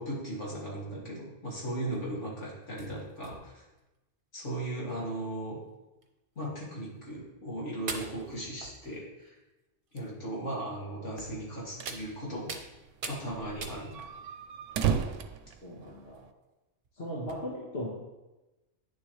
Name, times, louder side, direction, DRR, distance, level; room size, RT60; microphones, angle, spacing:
voice 1, 0.0-3.6 4.3-5.6 6.4-9.3 9.9-12.6 13.1-13.9, right 1 dB, 75° left, -5 dB, 2.8 m, -37 dB
sound 1, 1.9-2.2 2.8-3.8 4.5-4.6 4.9-5.0 6.0-6.1 7.1-7.2 7.9-9.3 10.0-10.1 11.2-11.4 11.9-12.7 13.0-13.2 13.6-14.2 14.8-15.3 15.8-16.2 16.8-16.9 17.3-17.4, right 3 dB, 50° right, 1.0 m, -42 dB
sound 2, 11.4-12.1 12.4-12.5 12.7-12.8 13.3-16.3, right 8 dB, 80° right, 1.0 m, -33 dB
voice 2, 15.6-16.2 17.0-17.9, equal, 55° left, -6 dB, 1.8 m, -38 dB
9.8 x 7.1 x 3.3 m, 1.0 s
omnidirectional pair, 1.3 m